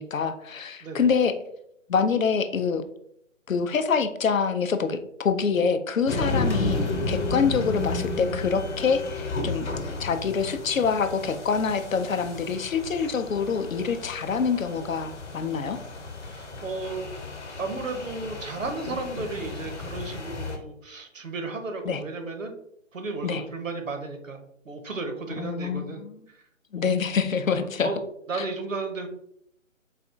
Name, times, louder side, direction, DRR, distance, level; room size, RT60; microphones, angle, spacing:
voice 1, 0.0-1.3 1.9-2.8 3.5-9.7 10.0-15.8 21.9-22.0 23.2-23.4 25.4-26.2 26.7-27.9 28.3-28.4, left 5 dB, 85° left, 10 dB, 0.5 m, -26 dB
sound 1, 6.1-20.6, left 2 dB, 60° left, 0.9 m, -33 dB
voice 2, 16.3-17.1 17.6-22.5 22.9-24.4 24.6-26.0 27.8-28.0 28.3-29.1, right 3 dB, 80° right, 5 dB, 0.8 m, -33 dB
4.1 x 2.3 x 2.6 m, 0.72 s
figure-of-eight pair, 135°, 39 cm